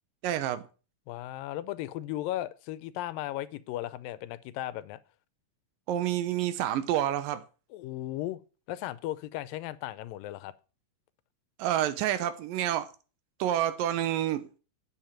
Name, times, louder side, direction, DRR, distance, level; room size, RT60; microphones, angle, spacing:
voice 1, 0.2-0.6 5.9-7.4 11.6-12.9 13.4-14.6, right 11 dB, 85° right, 2.6 m, -28 dB
voice 2, 1.1-5.0 7.7-8.4 8.7-10.5, left 14 dB, 90° left, 2.4 m, -36 dB
9.2 x 7.1 x 5.7 m
omnidirectional pair, 3.9 m